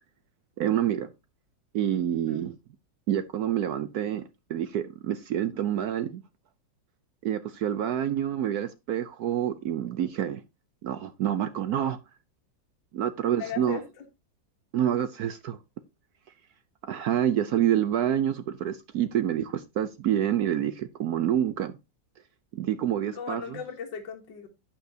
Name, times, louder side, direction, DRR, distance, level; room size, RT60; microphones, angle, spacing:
voice 1, 0.6-1.1 1.7-2.5 3.1-4.2 4.5-6.2 7.2-10.4 10.8-12.0 12.9-13.8 14.7-15.6 16.9-21.8 22.5-23.4, right 10 dB, 65° right, 1.1 m, -27 dB
voice 2, 13.2-13.8 23.1-24.5, left 7 dB, 75° left, 2.1 m, -37 dB
12.0 x 8.7 x 2.7 m
omnidirectional pair, 2.0 m